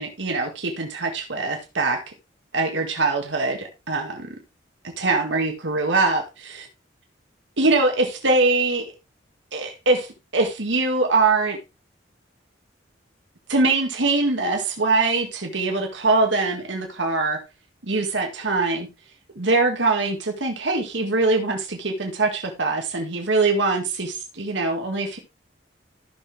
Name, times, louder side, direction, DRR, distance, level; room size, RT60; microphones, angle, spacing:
voice 1, 0.0-2.0 2.5-4.3 5.0-6.7 7.6-8.9 9.5-11.6 13.5-17.4 17.8-18.9 19.4-25.2, right 3 dB, 75° right, 1.9 m, -23 dB
14.0 x 6.2 x 3.5 m
head